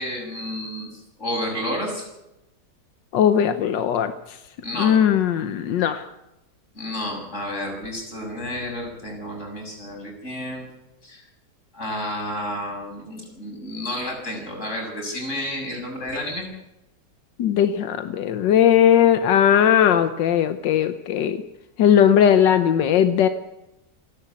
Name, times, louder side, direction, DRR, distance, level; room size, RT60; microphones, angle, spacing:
voice 1, 0.0-2.1 4.6-4.9 6.7-10.7 11.0-11.2 11.7-16.4, left 1 dB, 40° left, 2 dB, 7.1 m, -31 dB
voice 2, 3.1-4.4 4.8-6.1 17.4-21.4 21.8-23.3, left 9 dB, 90° left, 9 dB, 1.6 m, -18 dB
28.5 x 11.5 x 8.5 m, 0.92 s
omnidirectional pair, 1.9 m